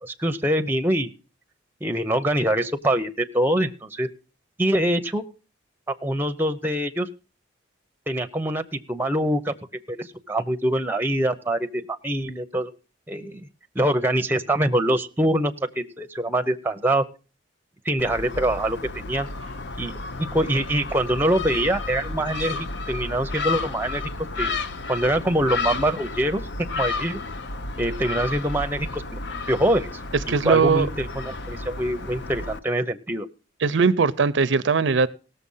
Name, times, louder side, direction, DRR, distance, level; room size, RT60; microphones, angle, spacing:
voice 1, 0.0-1.1 1.8-4.1 4.6-5.2 5.9-7.1 8.1-9.5 9.9-12.7 13.1-13.5 13.7-17.0 17.8-19.3 19.8-24.6 24.9-27.2 27.8-29.2 29.5-33.3, right 1 dB, 10° right, 0.7 m, -24 dB
Gull seagull, 18.0-32.6, left 3 dB, 60° left, 0.7 m, -32 dB
voice 2, 30.3-30.9 33.6-35.1, right 5 dB, 65° right, 0.5 m, -20 dB
17.5 x 6.9 x 5.5 m
head